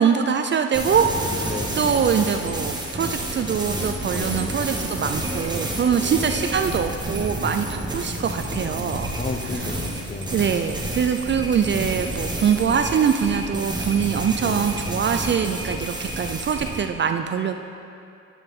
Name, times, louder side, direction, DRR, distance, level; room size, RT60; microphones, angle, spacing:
voice 1, 0.0-9.1 10.3-17.5, right 7 dB, 40° right, 7 dB, 0.4 m, -23 dB
sound 1, 0.7-16.8, right 1 dB, 15° right, 1.2 m, -29 dB
voice 2, 1.4-2.0 4.1-4.5 6.0-6.3 9.2-10.4 14.4-14.7, left 3 dB, 25° left, 4 dB, 0.9 m, -33 dB
9.1 x 8.9 x 3.7 m, 2.6 s
cardioid pair, 90°, 30 cm